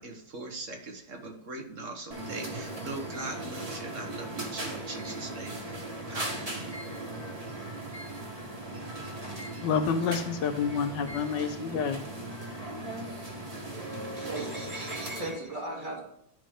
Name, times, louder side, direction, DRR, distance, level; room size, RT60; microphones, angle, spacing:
voice 1, 0.0-6.8, right 2 dB, 50° right, 1.3 m, -40 dB
sound 1, 2.1-15.4, right 1 dB, 20° right, 1.6 m, -38 dB
voice 2, 9.6-12.0, left 6 dB, 75° left, 1.3 m, -28 dB
voice 3, 14.2-16.0, right 2 dB, 70° right, 2.7 m, -37 dB
11.0 x 5.1 x 3.6 m
omnidirectional pair, 2.0 m